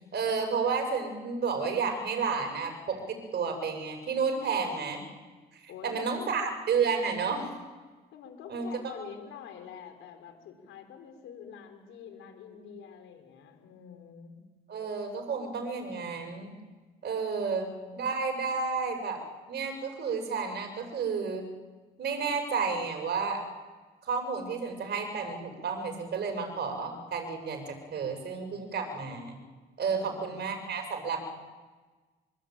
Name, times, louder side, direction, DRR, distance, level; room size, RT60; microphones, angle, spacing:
voice 1, 0.1-5.0 5.8-7.5 8.5-8.7 14.7-16.5 17.0-17.7 17.9-19.2 19.5-21.4 22.0-23.4 24.0-29.4 29.8-31.4, right 5 dB, 60° right, 5 dB, 6.5 m, -31 dB
voice 2, 5.7-6.3 8.1-14.3 17.3-18.0 29.9-30.5, left 7 dB, 90° left, 5 dB, 4.8 m, -47 dB
25.0 x 23.0 x 9.0 m, 1.3 s
cardioid pair, 90°, 20 cm